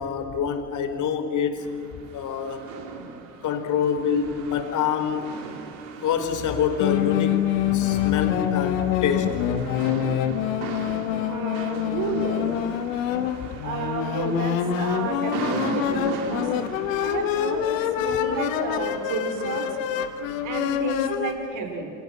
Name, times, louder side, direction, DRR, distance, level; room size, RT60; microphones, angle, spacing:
voice 1, 0.0-1.7 2.1-2.7 3.4-5.3 6.0-7.4 7.6-9.4, left 7 dB, 45° left, 7 dB, 4.4 m, -26 dB
sound 1, 1.6-20.8, right 5 dB, 65° right, 3.5 m, -39 dB
sound 2, 6.8-21.3, left 10 dB, 70° left, 1.9 m, -26 dB
voice 2, 11.2-12.6 13.6-16.5 17.0-19.7 20.4-21.9, right 5 dB, 50° right, 4 dB, 5.4 m, -31 dB
29.5 x 27.5 x 6.3 m, 2.4 s
hypercardioid pair, 70°, 40 cm